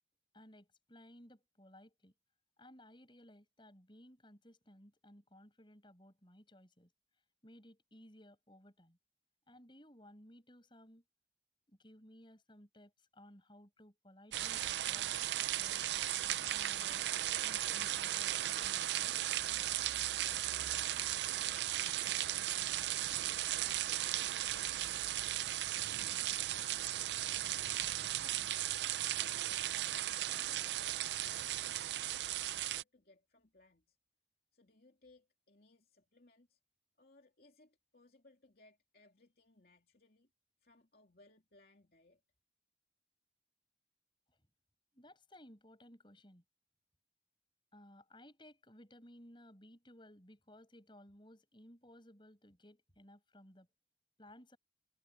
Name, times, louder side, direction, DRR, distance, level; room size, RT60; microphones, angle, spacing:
voice 1, 0.3-2.1 2.6-6.9 7.4-9.0 9.5-11.0 11.7-15.1 15.6-15.8 16.5-19.4 44.9-46.4 47.7-53.7 54.2-54.6, left 1 dB, 25° left, 8.0 m, -59 dB
sound 1, 14.3-32.8, right 13 dB, 75° right, 0.5 m, -36 dB
voice 2, 22.6-23.0 23.4-24.6 25.2-26.9 27.3-28.6 29.1-34.0 34.5-36.6 37.0-40.3 40.6-42.2, left 2 dB, 55° left, 3.1 m, -66 dB
head